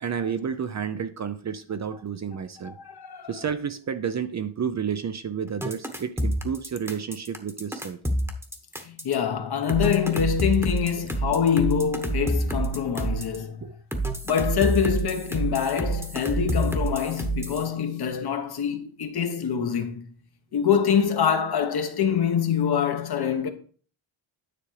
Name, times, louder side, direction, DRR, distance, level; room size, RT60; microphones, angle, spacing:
voice 1, 0.0-2.8 3.3-8.0 13.6-13.7, right 7 dB, 35° right, 0.6 m, -31 dB
voice 2, 2.6-3.3 8.8-13.6 14.3-20.0 20.5-23.5, left 7 dB, 50° left, 1.1 m, -25 dB
sound 1, 5.6-9.1 9.7-13.4 13.9-17.7, right 2 dB, 5° right, 1.1 m, -28 dB
9.9 x 3.7 x 4.8 m
cardioid pair, 115°, 48 cm